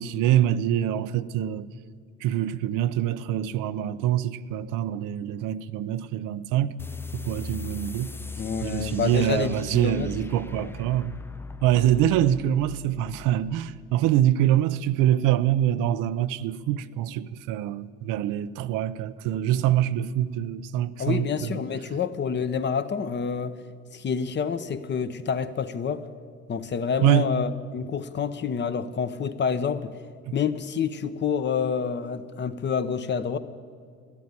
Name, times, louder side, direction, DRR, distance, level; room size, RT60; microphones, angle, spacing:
voice 1, 0.0-1.7 2.2-6.7 7.1-8.1 8.6-11.1 11.6-21.6 27.0-27.3 30.3-30.4, right 12 dB, 80° right, 0.7 m, -25 dB
sound 1, 6.8-13.9, left 3 dB, 10° left, 0.4 m, -39 dB
voice 2, 8.4-10.1 10.5-10.7 21.0-23.6 23.9-26.1 26.5-29.9 30.3-33.4, left 6 dB, 35° left, 0.9 m, -28 dB
13.0 x 11.0 x 9.7 m
cardioid pair, 110°, 31 cm